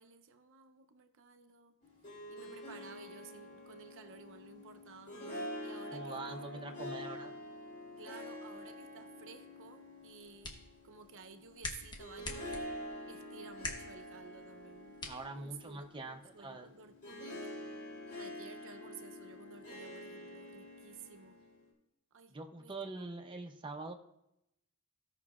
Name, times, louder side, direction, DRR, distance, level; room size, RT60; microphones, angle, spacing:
voice 1, 0.0-1.8 2.3-7.1 8.0-10.6 10.8-12.7 13.1-15.0 15.3-17.6 18.2-21.4 22.1-23.1, right 5 dB, 60° right, 8 dB, 0.7 m, -55 dB
Harp, 1.8-21.7, left 1 dB, 50° left, 3.2 m, -47 dB
voice 2, 5.9-7.3 15.0-16.7 22.3-23.9, right 2 dB, 20° right, 3 dB, 0.6 m, -44 dB
sound 1, 10.0-16.0, left 2 dB, 20° left, 1.1 m, -47 dB
16.0 x 5.8 x 2.4 m, 0.84 s
head